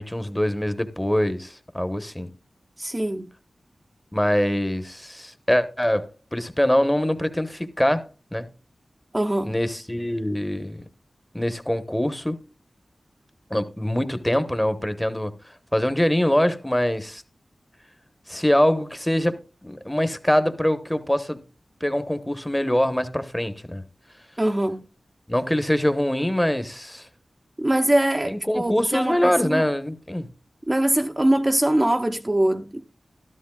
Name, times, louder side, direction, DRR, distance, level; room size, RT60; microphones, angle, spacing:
voice 1, 0.0-2.3 4.1-8.5 9.4-10.8 11.3-12.4 13.5-15.3 15.7-17.2 18.3-21.4 21.8-23.8 25.3-27.1 28.3-30.3, left 1 dB, 10° left, 1.0 m, -24 dB
voice 2, 2.8-3.3 9.1-9.5 24.4-24.8 27.6-29.6 30.7-32.9, right 1 dB, 25° right, 0.7 m, -22 dB
13.0 x 13.0 x 2.3 m
cardioid pair, 50°, 0 cm